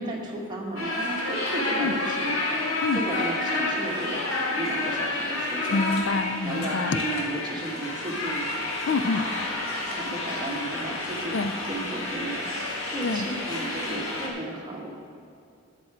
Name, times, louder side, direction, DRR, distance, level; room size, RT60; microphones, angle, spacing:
voice 1, 0.0-2.3 2.9-4.2 4.5-5.9 6.4-8.8 9.2-9.3 9.9-11.4 11.7-14.9, right 1 dB, 20° right, -2 dB, 1.4 m, -34 dB
sound 1, 0.8-14.3, left 2 dB, 80° left, 1.7 m, -30 dB
voice 2, 5.7-7.0 8.9-9.3 11.3-11.5 13.0-13.3, left 3 dB, 60° left, 10 dB, 0.4 m, -26 dB
11.5 x 7.7 x 4.8 m, 2.5 s
head